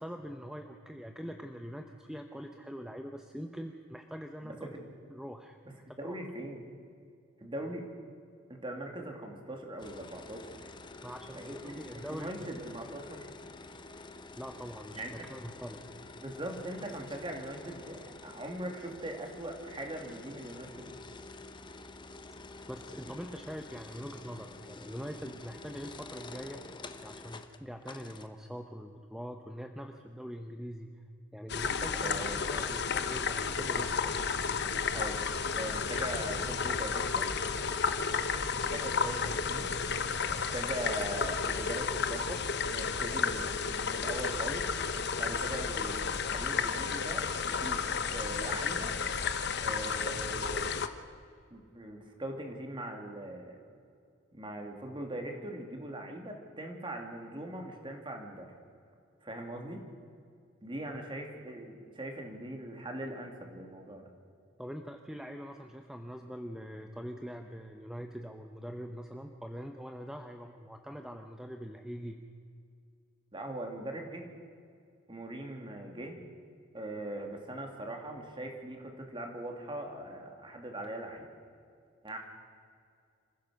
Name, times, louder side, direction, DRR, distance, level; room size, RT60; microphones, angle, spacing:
voice 1, 0.0-4.7 5.1-6.2 11.0-12.5 14.4-15.8 22.7-26.6 27.0-31.0 31.3-34.1 64.6-72.2, equal, 5° right, 4 dB, 0.9 m, -43 dB
voice 2, 4.4-4.8 6.0-6.6 7.4-7.8 8.5-10.7 11.3-11.8 12.2-13.3 14.9-15.1 16.2-20.9 31.9-32.5 34.9-35.3 35.6-37.4 38.5-39.8 40.3-44.7 45.2-48.9 49.6-50.7 51.5-53.6 54.3-58.5 59.2-59.8 60.6-64.1 73.3-74.2 75.1-76.2 76.7-81.3 82.0-82.2, right 1 dB, 25° right, 2 dB, 2.8 m, -41 dB
sound 1, 9.8-28.3, left 3 dB, 25° left, 0.9 m, -48 dB
sound 2, 31.5-50.9, left 5 dB, 55° left, 1.0 m, -32 dB
27.5 x 15.5 x 6.5 m, 2.3 s
head